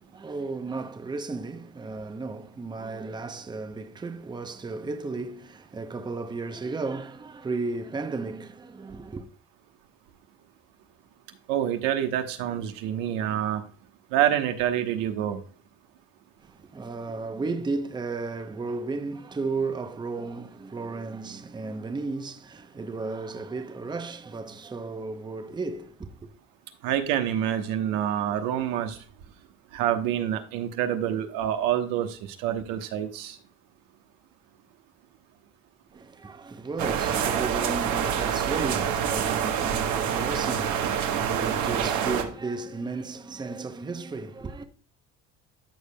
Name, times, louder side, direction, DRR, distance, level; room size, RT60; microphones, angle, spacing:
voice 1, 0.0-9.3 16.4-26.3 35.9-44.6, right 3 dB, 15° right, 0.7 m, -34 dB
voice 2, 11.5-13.6 14.1-15.4 26.8-29.0 29.7-33.3, right 10 dB, 80° right, 1.1 m, -27 dB
sound 1, 36.8-42.2, right 8 dB, 60° right, 1.2 m, -26 dB
13.5 x 5.1 x 2.2 m
supercardioid pair, 95°, 33 cm